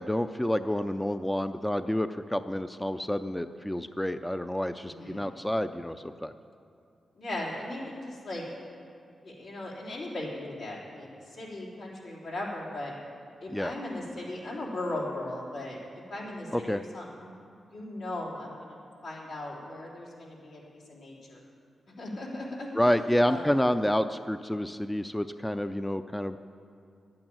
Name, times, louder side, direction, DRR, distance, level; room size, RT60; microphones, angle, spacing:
voice 1, 0.0-6.3 13.5-13.7 16.5-16.8 22.7-26.4, equal, 10° left, 10 dB, 0.4 m, -29 dB
voice 2, 4.8-5.3 7.1-8.5 9.2-12.9 13.4-15.8 16.1-17.3 17.7-18.8 19.0-21.4 22.0-23.0 23.3-23.6, left 1 dB, 80° left, -4 dB, 3.4 m, -38 dB
11.0 x 8.8 x 9.0 m, 2.5 s
cardioid pair, 75°, 0 cm